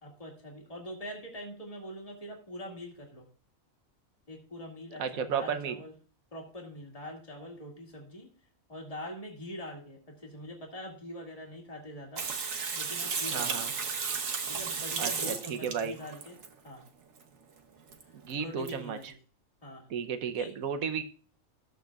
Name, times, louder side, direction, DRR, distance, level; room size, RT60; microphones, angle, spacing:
voice 1, 0.0-3.3 4.3-5.9 6.3-8.3 8.7-12.3 12.7-13.8 14.5-16.4 16.6-16.8 18.3-19.1 19.6-19.9 20.3-20.5, left 1 dB, 25° left, 0 dB, 2.2 m, -43 dB
voice 2, 5.0-5.7 13.3-13.7 15.0-16.0 18.2-19.1 19.9-21.0, right 7 dB, 90° right, 7 dB, 1.3 m, -33 dB
Water tap faucet / Sink (filling or washing), 12.2-16.5 17.9-18.0 18.3-18.4 18.7-18.8, right 5 dB, 75° right, 1.4 m, -33 dB
14.0 x 7.7 x 2.4 m, 0.39 s
omnidirectional pair, 1.4 m